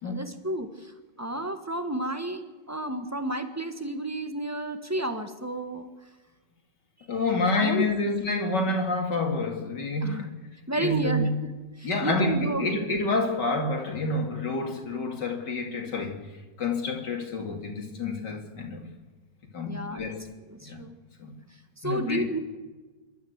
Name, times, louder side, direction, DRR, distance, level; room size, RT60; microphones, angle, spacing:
voice 1, 0.0-5.9 7.6-7.9 10.0-10.3 10.7-11.3 11.8-12.7 19.6-21.0 21.8-22.4, right 1 dB, 10° right, 1.3 m, -31 dB
voice 2, 7.1-10.3 10.8-11.3 11.8-16.2 16.6-18.9 19.5-20.2 20.6-20.8 21.2-21.3 21.8-22.2, left 2 dB, 70° left, 3.0 m, -28 dB
27.0 x 12.5 x 8.1 m
omnidirectional pair, 1.9 m